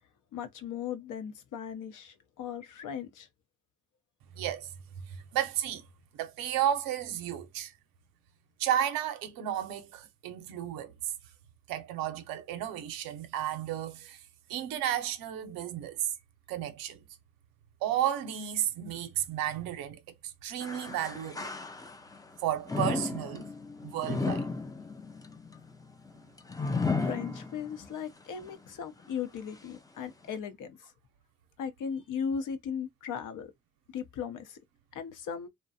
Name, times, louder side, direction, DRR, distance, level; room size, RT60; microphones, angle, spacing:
voice 1, 0.3-3.3 27.0-30.9 31.6-33.5 33.9-34.6 34.9-35.5, left 7 dB, 65° left, 0.6 m, -37 dB
voice 2, 4.4-4.7 5.1-5.8 6.1-7.7 8.6-10.9 11.7-14.2 14.5-16.1 16.5-17.0 17.8-20.0 20.4-21.5 22.4-23.5 23.8-24.5, right 11 dB, 85° right, 0.6 m, -32 dB
sound 1, 20.6-22.2 22.7-27.9 28.4-28.5 29.4-29.5, left 4 dB, 10° left, 0.4 m, -34 dB
2.4 x 2.1 x 2.6 m
supercardioid pair, 65°, 34 cm